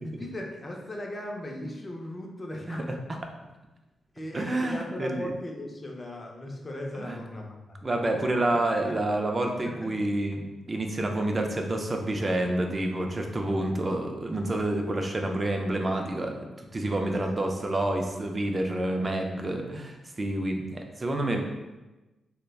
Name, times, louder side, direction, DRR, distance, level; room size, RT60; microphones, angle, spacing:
voice 1, 0.0-3.0 4.1-8.9 9.6-10.1 16.9-17.1, left 1 dB, 35° left, 0 dB, 0.5 m, -38 dB
voice 2, 4.3-5.3 7.0-7.2 7.8-21.5, right 1 dB, 35° right, 3 dB, 0.4 m, -28 dB
3.2 x 2.1 x 2.3 m, 1.1 s
cardioid pair, 70°, 0 cm